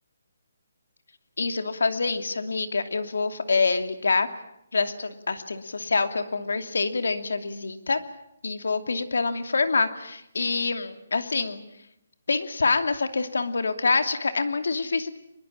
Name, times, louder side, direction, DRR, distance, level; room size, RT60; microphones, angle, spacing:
voice 1, 1.4-4.3 4.7-8.0 8.4-11.6 12.3-15.2, left 4 dB, 85° left, 8 dB, 2.7 m, -26 dB
24.0 x 22.0 x 8.7 m, 0.81 s
hypercardioid pair, 180°, 0 cm